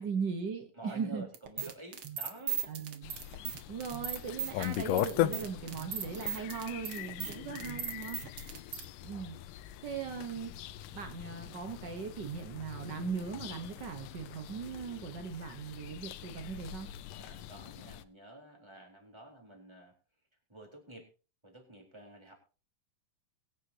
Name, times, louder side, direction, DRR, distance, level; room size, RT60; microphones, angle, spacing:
voice 1, 0.0-1.2 2.7-8.2 9.0-9.4 9.8-10.5 10.9-16.9, right 6 dB, 70° right, 6 dB, 1.0 m, -39 dB
voice 2, 0.8-2.6 17.2-19.9 20.5-21.0 21.4-22.3, right 1 dB, 10° right, 1 dB, 3.7 m, -50 dB
sound 1, 1.3-8.8, right 9 dB, 50° right, 1.8 m, -38 dB
sound 2, 3.0-18.0, left 13 dB, 80° left, 2.3 m, -40 dB
22.5 x 9.9 x 2.9 m, 0.35 s
omnidirectional pair, 3.8 m